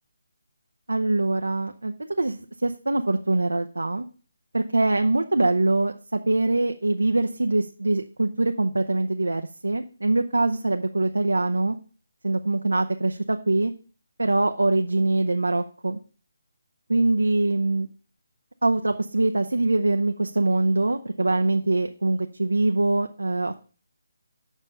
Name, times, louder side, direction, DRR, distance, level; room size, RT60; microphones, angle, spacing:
voice 1, 0.9-4.0 4.5-11.8 12.2-13.7 14.2-16.0 16.9-17.9 18.6-23.6, right 2 dB, 90° right, 6 dB, 0.5 m, -23 dB
7.3 x 5.3 x 5.4 m, 0.37 s
figure-of-eight pair, 155°, 0 cm